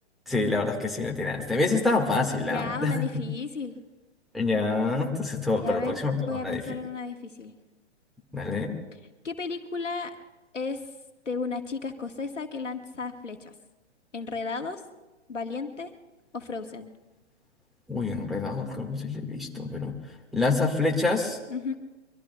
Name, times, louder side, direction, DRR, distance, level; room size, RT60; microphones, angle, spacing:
voice 1, 0.3-3.2 4.3-6.6 8.3-8.7 17.9-19.9 20.3-21.4, left 3 dB, ahead, -2 dB, 1.7 m, -27 dB
voice 2, 2.4-3.8 5.6-6.0 6.3-7.5 9.2-10.1 10.5-10.9 11.2-13.5 14.1-14.8 15.3-15.9 16.3-16.9 21.5-21.7, left 4 dB, 85° left, 6 dB, 1.4 m, -33 dB
25.5 x 23.5 x 2.3 m, 1.1 s
figure-of-eight pair, 120°, 36 cm